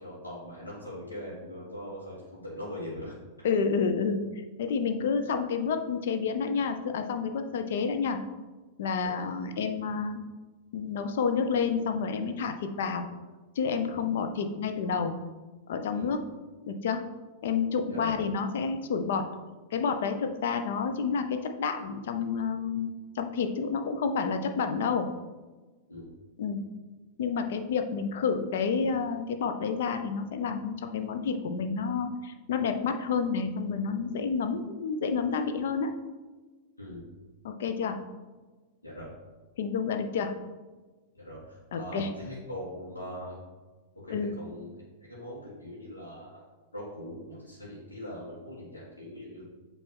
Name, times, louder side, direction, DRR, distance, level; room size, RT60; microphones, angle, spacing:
voice 1, 0.0-3.2 9.0-9.1 13.9-14.0 15.9-16.1 17.9-18.1 25.9-26.1 36.8-37.1 38.8-39.1 41.1-43.4 44.0-44.7 45.0-46.3 46.7-49.4, equal, 80° left, -7 dB, 1.7 m, -41 dB
voice 2, 3.4-4.2 4.6-8.2 8.8-10.2 10.7-13.1 13.6-15.1 15.7-16.2 16.7-17.1 17.4-19.3 19.7-22.9 23.1-25.1 26.4-26.6 27.2-35.9 37.4-38.0 39.6-40.3 41.7-42.1 44.1-44.3, left 5 dB, 60° left, 7 dB, 0.6 m, -29 dB
7.4 x 3.3 x 4.4 m, 1.3 s
figure-of-eight pair, 95°, 0 cm